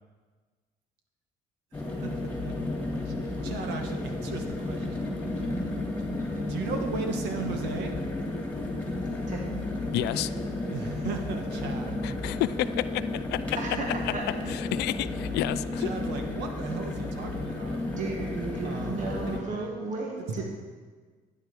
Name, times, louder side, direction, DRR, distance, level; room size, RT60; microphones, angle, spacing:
sound 1, 1.7-19.4, left 2 dB, 10° left, 2.6 m, -32 dB
voice 1, 1.7-2.1 2.4-2.5 3.0-5.0 5.3-5.5 6.4-8.0 10.7-12.2 14.4-14.5 15.8-17.8 18.6-19.7 20.3-20.4, right 5 dB, 85° right, 4 dB, 1.5 m, -37 dB
voice 2, 9.9-10.3 12.0-13.6 14.1-15.9, left 15 dB, 80° left, 14 dB, 0.4 m, -31 dB
voice 3, 13.6-13.9 14.1-14.2 18.0-20.4, right 3 dB, 50° right, 0 dB, 1.7 m, -34 dB
11.5 x 9.4 x 4.8 m, 1.5 s
cardioid pair, 110°, 17 cm